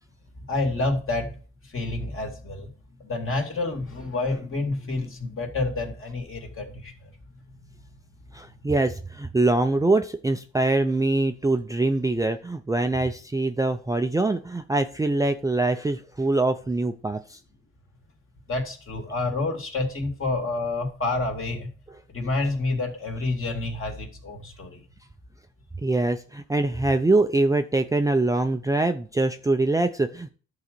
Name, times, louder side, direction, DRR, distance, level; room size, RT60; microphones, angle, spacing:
voice 1, 0.5-1.3 1.7-2.7 3.0-7.1 18.5-21.7 22.1-24.8, left 2 dB, 45° left, 3 dB, 2.6 m, -28 dB
voice 2, 8.3-17.4 25.8-30.3, right 2 dB, 10° right, 7 dB, 0.5 m, -24 dB
11.0 x 3.9 x 6.8 m, 0.40 s
cardioid pair, 90°, 30 cm